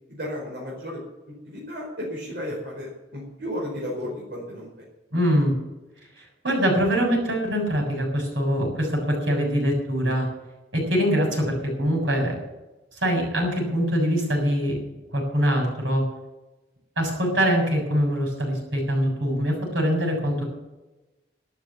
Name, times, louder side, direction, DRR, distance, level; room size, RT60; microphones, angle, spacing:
voice 1, 0.1-1.0 1.4-4.7, equal, 60° right, -3 dB, 4.8 m, -33 dB
voice 2, 5.1-5.5 6.2-10.3 10.7-12.4 12.9-14.8 15.1-16.0 17.0-20.5, equal, 80° right, 1 dB, 7.1 m, -23 dB
12.5 x 12.0 x 7.2 m, 1.0 s
head